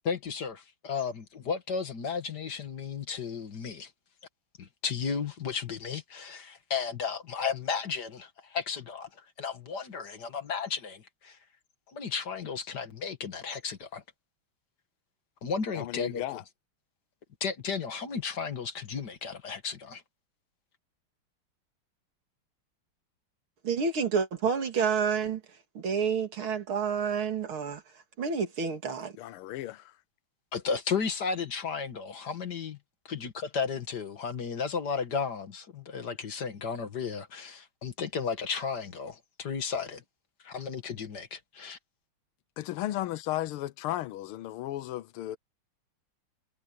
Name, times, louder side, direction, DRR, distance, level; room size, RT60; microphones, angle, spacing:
voice 1, 0.1-3.9 4.6-9.1 9.4-11.4 11.9-14.0 15.4-16.2 17.4-20.0 30.5-32.8 33.1-40.0 40.4-41.8, left 6 dB, 50° left, 2.0 m, -34 dB
voice 2, 15.7-16.4 29.2-29.9 42.6-45.4, left 14 dB, 80° left, 1.6 m, -34 dB
voice 3, 23.6-25.4 25.7-29.2, right 6 dB, 70° right, 3.2 m, -29 dB
omnidirectional pair, 2.4 m